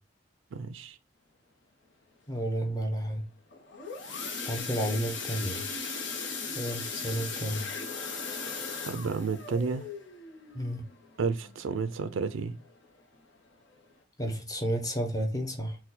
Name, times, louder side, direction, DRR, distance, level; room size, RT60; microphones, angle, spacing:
voice 1, 0.5-1.0 8.5-8.6 8.8-9.9 11.2-12.5, right 5 dB, 90° right, 0.4 m, -31 dB
voice 2, 2.3-3.2 4.4-5.6 6.5-7.6 10.5-10.8 14.2-15.8, right 1 dB, 20° left, 0.8 m, -31 dB
sound 1, 3.5-12.2 12.6-12.9 13.1-13.2 13.7-13.8, left 4 dB, 65° left, 1.0 m, -38 dB
4.2 x 2.2 x 4.0 m
head